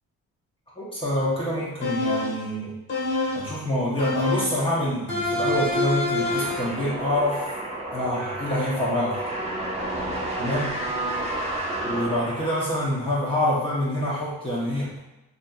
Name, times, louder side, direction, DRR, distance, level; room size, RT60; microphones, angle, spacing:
voice 1, 0.8-2.7 3.3-7.5 7.9-9.2 10.4-10.8 11.8-15.0, left 1 dB, 20° left, -8 dB, 0.7 m, -26 dB
sound 1, 1.8-2.5 2.9-3.5 4.0-4.6 5.1-6.7, left 2 dB, 40° left, 1.0 m, -26 dB
sound 2, 6.1-12.9, right 1 dB, 20° right, 0.7 m, -31 dB
2.7 x 2.7 x 2.2 m, 0.93 s
cardioid pair, 90°, 30 cm